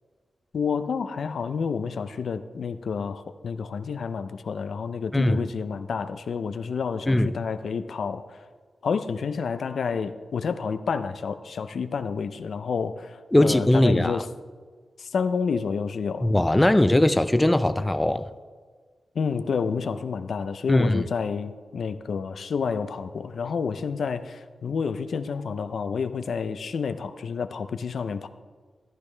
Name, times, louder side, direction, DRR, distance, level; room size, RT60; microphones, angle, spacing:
voice 1, 0.5-8.4 8.8-14.3 15.0-16.3 19.2-28.3, left 5 dB, 80° left, 0.5 m, -29 dB
voice 2, 13.3-14.2 16.2-18.3 20.7-21.0, left 1 dB, 15° left, 0.4 m, -20 dB
14.0 x 11.5 x 3.3 m
wide cardioid pair, 95°, 0 cm